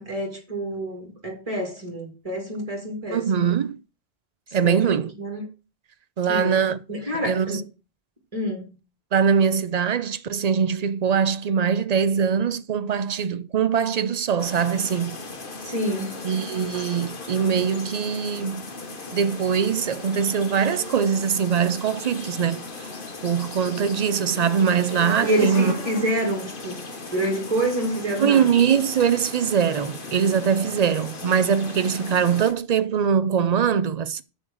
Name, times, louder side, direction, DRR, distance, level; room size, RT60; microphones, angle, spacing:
voice 1, 0.0-3.5 4.6-4.9 5.2-5.4 6.3-7.6 8.3-8.7 15.6-16.1 25.2-26.8 27.1-28.4, right 1 dB, 30° right, 2.8 m, -27 dB
voice 2, 3.1-3.8 4.5-5.1 6.2-6.8 7.1-7.6 9.1-15.2 16.2-18.7 19.1-22.9 23.2-25.8 28.2-34.2, right 7 dB, 50° right, 0.6 m, -22 dB
sound 1, 14.4-32.5, left 3 dB, 55° left, 1.5 m, -37 dB
6.4 x 6.3 x 6.2 m
omnidirectional pair, 1.1 m